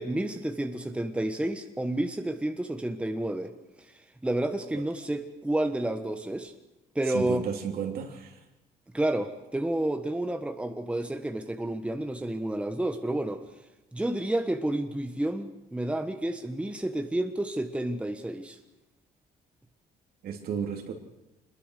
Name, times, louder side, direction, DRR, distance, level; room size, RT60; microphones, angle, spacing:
voice 1, 0.0-3.5 4.2-6.5 6.9-7.4 8.9-13.4 13.9-18.6, right 1 dB, 5° right, 7 dB, 1.4 m, -30 dB
voice 2, 7.0-8.4 20.2-20.9, right 7 dB, 65° right, 4 dB, 3.4 m, -33 dB
24.5 x 21.5 x 6.7 m, 0.99 s
cardioid pair, 110°, 17 cm